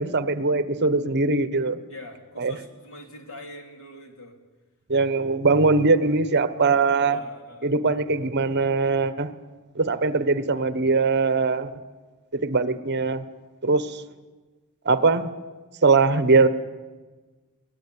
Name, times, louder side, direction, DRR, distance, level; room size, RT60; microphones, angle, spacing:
voice 1, 0.0-1.8 2.4-2.6 4.9-7.2 7.6-9.3 9.7-11.7 12.3-13.2 13.6-14.0 14.8-15.3 15.8-16.5, right 3 dB, 50° right, 13 dB, 1.1 m, -21 dB
voice 2, 1.9-4.4 7.0-7.7, left 1 dB, 65° left, 4 dB, 3.8 m, -43 dB
23.0 x 18.5 x 9.7 m, 1.3 s
head